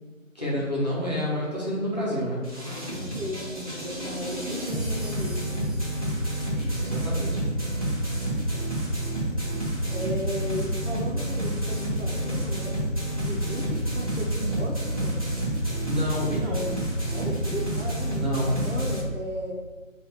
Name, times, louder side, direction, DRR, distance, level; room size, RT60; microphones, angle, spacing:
voice 1, 0.3-2.4 6.6-7.4 15.8-16.7 18.1-18.5, equal, 30° left, -7 dB, 1.1 m, -28 dB
sound 1, 2.4-19.0, right 1 dB, 25° right, 1.2 m, -29 dB
voice 2, 2.7-5.7 9.9-12.8 13.2-15.3 17.1-18.2 18.5-19.5, left 1 dB, 60° right, -2 dB, 1.1 m, -35 dB
4.8 x 2.7 x 3.7 m, 1.4 s
figure-of-eight pair, 170°, 40 cm